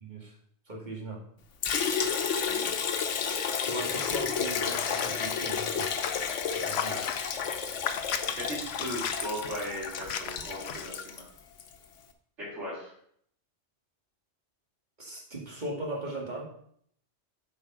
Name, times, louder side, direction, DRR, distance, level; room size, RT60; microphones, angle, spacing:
voice 1, 0.0-0.3 0.7-1.2 3.6-5.9 6.5-7.0 15.0-16.4, right 1 dB, 40° right, -2 dB, 2.1 m, -38 dB
Liquid, 1.6-11.7, left 6 dB, 90° left, 1.2 m, -31 dB
sound 1, 3.9-10.9, left 8 dB, 65° left, 0.8 m, -38 dB
voice 2, 6.6-7.1 8.4-11.2 12.4-12.9, equal, 90° right, -11 dB, 3.4 m, -38 dB
8.1 x 5.2 x 5.0 m, 0.65 s
omnidirectional pair, 1.2 m